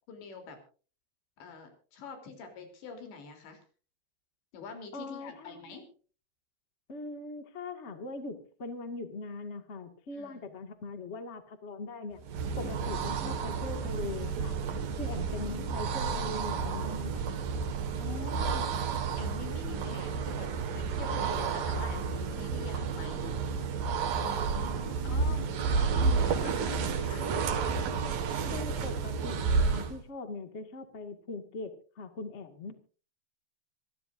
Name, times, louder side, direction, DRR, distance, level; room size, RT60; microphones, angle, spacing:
voice 1, 0.1-0.6 1.4-3.6 4.5-5.9 10.1-10.5 12.6-12.9 15.2-15.9 18.0-18.7 19.2-20.5 20.8-23.6 24.2-24.7 25.0-27.3, left 5 dB, 90° left, 5 dB, 5.8 m, -45 dB
voice 2, 4.9-5.8 6.9-12.2 12.6-14.5 15.0-17.3 24.5-25.5 28.4-32.8, left 3 dB, 70° left, 7 dB, 0.6 m, -41 dB
sound 1, 12.2-30.0, right 5 dB, 60° right, 3.0 m, -31 dB
26.5 x 14.5 x 2.6 m, 0.38 s
omnidirectional pair, 4.9 m